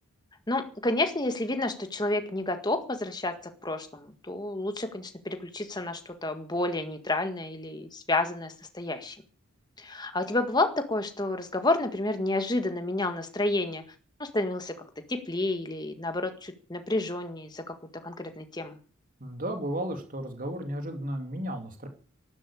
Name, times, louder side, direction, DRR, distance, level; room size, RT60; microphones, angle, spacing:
voice 1, 0.5-3.3 3.6-9.1 9.8-13.8 14.2-14.7 15.1-17.6 18.0-18.8, left 2 dB, 20° left, 7 dB, 1.8 m, -30 dB
voice 2, 19.2-21.9, right 1 dB, 40° right, 6 dB, 2.7 m, -34 dB
12.0 x 12.0 x 8.6 m, 0.40 s
head